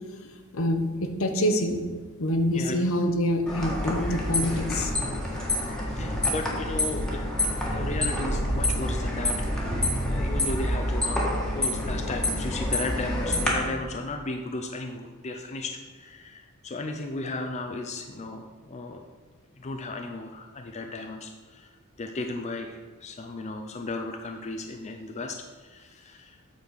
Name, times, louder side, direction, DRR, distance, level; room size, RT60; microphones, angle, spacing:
voice 1, 0.2-0.9 1.2-1.8 2.2-4.9, equal, 65° left, 6 dB, 0.9 m, -26 dB
sound 1, 3.5-13.5, left 1 dB, 5° left, 1.5 m, -27 dB
voice 2, 5.5-19.1 19.6-21.7 22.0-26.4, left 2 dB, 30° left, 4 dB, 0.5 m, -35 dB
8.3 x 4.2 x 6.3 m, 1.4 s
head